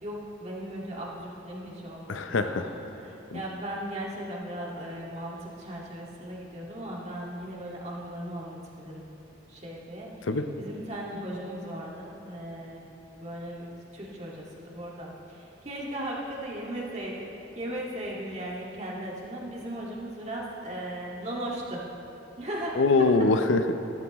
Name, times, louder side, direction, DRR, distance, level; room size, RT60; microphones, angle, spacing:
voice 1, 0.0-9.1 9.5-10.1 10.6-17.3 17.6-21.8 22.4-22.8, right 1 dB, 35° right, -4 dB, 2.0 m, -37 dB
voice 2, 2.1-2.7 3.3-3.4 10.2-10.4 22.8-23.7, left 3 dB, 85° left, 8 dB, 0.7 m, -23 dB
14.5 x 13.0 x 3.1 m, 2.9 s
head